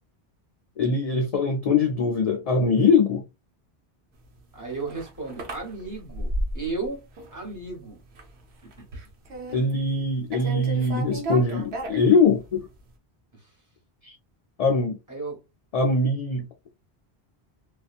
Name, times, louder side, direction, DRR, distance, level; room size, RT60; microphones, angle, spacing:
voice 1, 0.8-3.2 9.5-12.7 14.0-14.1 14.6-15.0 15.7-16.5, left 3 dB, 55° left, 0.4 m, -22 dB
sound 1, 4.4-6.9 7.2-7.7 8.0-8.4 8.6-10.0 10.3-12.6, right 1 dB, 80° right, 1.0 m, -33 dB
voice 2, 4.5-7.0 7.3-8.0 8.6-9.1 13.3-13.5 15.1-15.4, right 3 dB, 20° right, 1.2 m, -35 dB
2.6 x 2.3 x 2.4 m
omnidirectional pair, 1.1 m